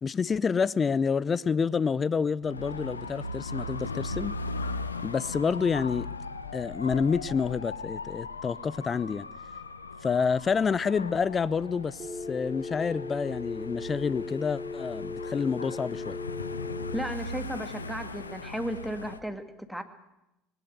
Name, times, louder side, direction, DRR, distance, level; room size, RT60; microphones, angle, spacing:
voice 1, 0.0-4.4 5.0-6.1 6.5-9.3 10.0-16.2, left 5 dB, 30° left, 0.6 m, -28 dB
Dog / Motorcycle, 2.4-19.2, left 3 dB, 85° left, 0.8 m, -38 dB
Telephone, 12.0-17.0, left 3 dB, 25° right, 2.4 m, -37 dB
voice 2, 16.9-19.8, equal, ahead, 2.0 m, -34 dB
20.0 x 17.5 x 8.0 m
figure-of-eight pair, 70°, 0 cm